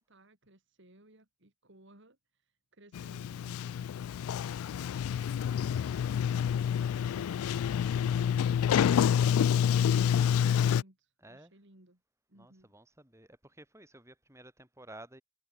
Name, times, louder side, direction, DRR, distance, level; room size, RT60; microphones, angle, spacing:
voice 1, 0.0-3.9 5.2-12.0 12.3-12.7, right 1 dB, 55° right, 3.5 m, -61 dB
Sliding door, 2.9-10.8, left 8 dB, 80° left, 0.3 m, -28 dB
voice 2, 4.2-4.5 11.2-11.5 12.3-15.2, right 1 dB, 15° right, 5.5 m, -53 dB
head